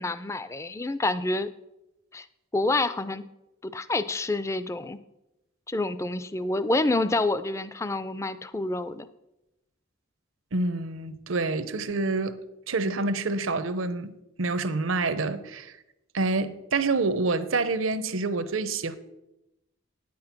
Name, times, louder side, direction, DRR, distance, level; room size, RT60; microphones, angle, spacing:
voice 1, 0.0-1.5 2.1-2.3 2.5-3.3 3.6-5.0 5.7-9.1, left 2 dB, 15° left, 0.3 m, -28 dB
voice 2, 10.5-12.4 12.7-15.7 16.1-19.0, right 3 dB, 80° right, 0.8 m, -27 dB
9.4 x 8.7 x 5.9 m
head